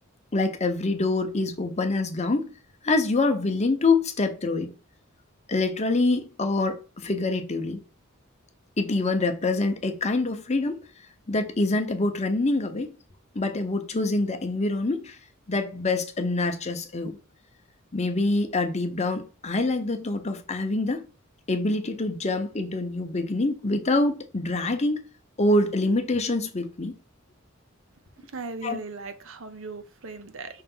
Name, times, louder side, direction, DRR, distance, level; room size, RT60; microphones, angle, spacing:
voice 1, 0.3-2.5 2.8-4.7 5.5-7.8 8.8-10.8 11.3-12.9 13.3-15.2 15.5-17.2 17.9-21.1 21.5-25.0 25.4-26.9 28.6-28.8, left 2 dB, 30° left, 0.8 m, -25 dB
voice 2, 28.2-30.6, right 3 dB, 65° right, 0.8 m, -38 dB
5.6 x 3.2 x 5.4 m
head